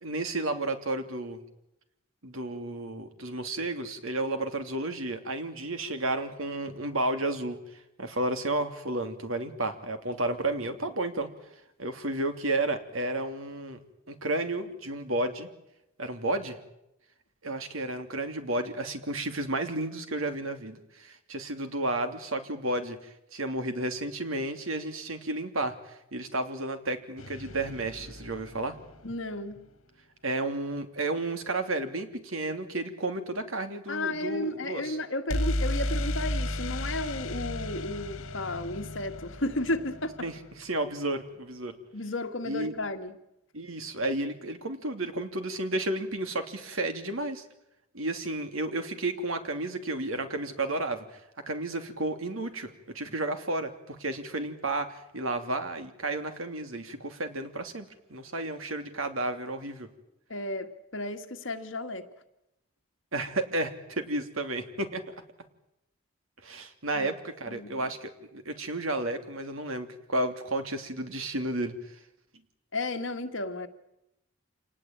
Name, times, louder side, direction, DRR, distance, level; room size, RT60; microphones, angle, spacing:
voice 1, 0.0-1.4 2.2-7.6 8.0-11.3 11.8-13.8 14.1-15.5 16.0-16.6 17.4-28.7 30.2-35.0 40.2-41.7 42.4-42.8 43.5-47.4 47.9-51.2 51.5-59.9 63.1-65.0 66.4-71.7, right 2 dB, 85° right, 2.9 m, -32 dB
sound 1, 27.2-29.2 35.3-41.1, left 1 dB, 85° left, 1.9 m, -34 dB
voice 2, 29.0-29.6 33.9-40.3 41.9-43.2 60.3-62.1 66.9-67.1 67.5-67.9 72.7-73.7, left 2 dB, 65° left, 2.0 m, -33 dB
27.5 x 19.0 x 8.9 m
head